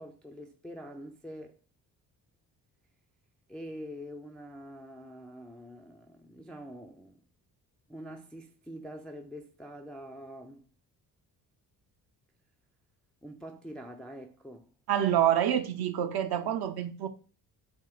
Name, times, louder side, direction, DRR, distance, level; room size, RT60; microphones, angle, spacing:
voice 1, 0.0-1.5 3.5-7.2 7.9-10.7 13.2-14.7, equal, ahead, 0.3 m, -45 dB
voice 2, 14.9-17.1, right 10 dB, 50° right, 0.6 m, -27 dB
3.3 x 2.9 x 4.4 m
figure-of-eight pair, 45°, 50 cm